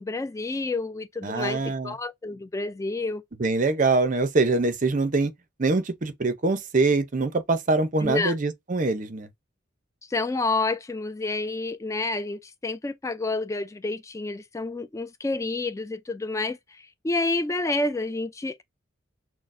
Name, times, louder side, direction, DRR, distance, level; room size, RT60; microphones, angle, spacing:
voice 1, 0.0-3.2 8.0-8.4 10.1-18.6, left 3 dB, 15° left, 0.3 m, -29 dB
voice 2, 1.2-1.9 3.4-5.3 5.6-9.3, right 3 dB, 40° right, 0.6 m, -24 dB
6.1 x 2.1 x 2.5 m
head